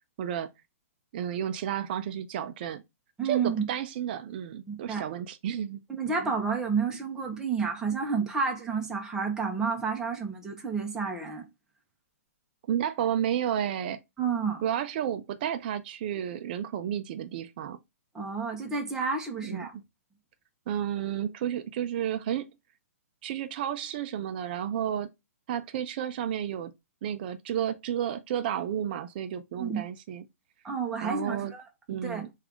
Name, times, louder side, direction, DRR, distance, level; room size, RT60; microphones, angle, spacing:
voice 1, 0.2-0.5 1.1-2.8 3.2-5.8 12.7-14.0 14.6-17.8 19.4-19.7 20.7-22.5 23.2-25.1 25.5-26.7 27.0-30.2 31.0-31.5 31.9-32.3, right 9 dB, 40° right, 0.3 m, -31 dB
voice 2, 3.2-3.6 4.7-5.0 5.9-11.4 14.2-14.6 18.1-19.8 29.6-29.8 30.6-31.6 32.0-32.2, right 5 dB, 5° right, 0.6 m, -30 dB
3.4 x 2.4 x 3.5 m
hypercardioid pair, 140°, 8 cm